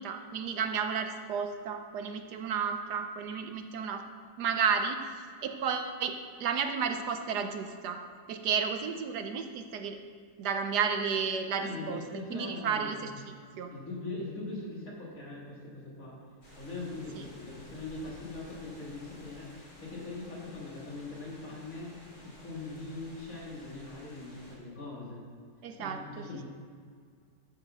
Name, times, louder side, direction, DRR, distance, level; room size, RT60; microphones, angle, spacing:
voice 1, 0.0-4.0 4.4-8.0 8.3-10.0 10.4-12.0 12.3-13.1 13.6-13.7 17.1-17.2 25.6-26.4, right 6 dB, 70° right, 6 dB, 1.2 m, -32 dB
voice 2, 11.6-13.1 13.7-16.2 16.5-25.2 25.8-26.4, left 2 dB, 50° left, -4 dB, 2.8 m, -41 dB
sound 1, 16.4-24.6, left 1 dB, 25° left, 2.1 m, -53 dB
13.0 x 4.9 x 5.9 m, 2.1 s
omnidirectional pair, 1.9 m